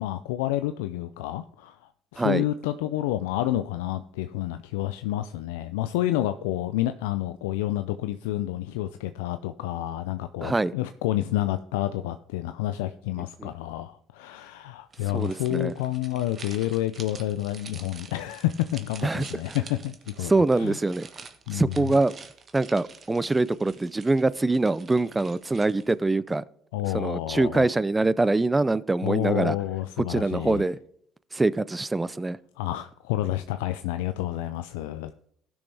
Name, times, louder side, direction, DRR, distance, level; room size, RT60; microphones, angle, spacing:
voice 1, 0.0-20.8 21.5-21.8 26.7-27.7 29.0-30.6 32.6-35.1, left 14 dB, 85° left, 0.4 m, -29 dB
voice 2, 10.4-10.7 13.4-13.5 15.1-15.7 19.0-19.3 20.2-21.1 21.5-22.1 22.5-26.4 26.9-29.6 30.1-30.8 31.3-32.4, right 2 dB, 15° right, 0.4 m, -24 dB
sound 1, 14.9-26.1, right 5 dB, 40° right, 1.3 m, -47 dB
15.5 x 6.2 x 3.4 m
hypercardioid pair, 70°, 0 cm